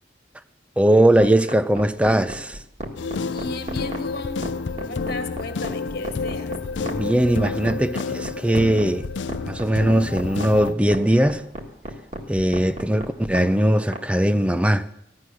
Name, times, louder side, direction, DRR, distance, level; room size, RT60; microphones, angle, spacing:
voice 1, 0.8-2.6 6.8-9.1 9.4-11.4 12.3-14.9, right 1 dB, 5° right, 0.5 m, -20 dB
sound 1, 1.2-14.0, right 1 dB, 40° right, 1.8 m, -33 dB
sound 2, 3.0-10.7, left 4 dB, 80° left, 0.5 m, -30 dB
voice 2, 3.2-4.5 4.7-6.6, left 2 dB, 55° left, 1.7 m, -35 dB
15.5 x 11.5 x 6.2 m
head